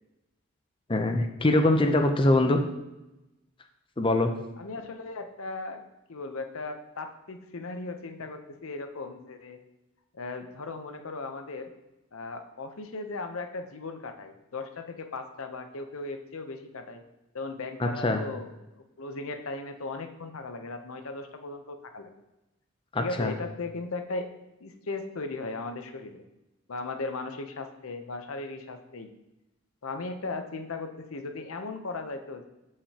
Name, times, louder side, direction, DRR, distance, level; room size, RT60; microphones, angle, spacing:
voice 1, 0.9-2.6 4.0-4.3 17.8-18.2 22.9-23.3, left 2 dB, 25° left, 5 dB, 0.6 m, -23 dB
voice 2, 4.6-5.8 6.1-9.6 10.1-11.7 12.1-17.0 17.3-18.5 19.0-22.1 23.0-24.3 24.6-26.2 26.7-29.1 29.8-32.5, left 3 dB, 75° left, 7 dB, 0.8 m, -37 dB
12.5 x 5.0 x 2.9 m, 0.97 s
head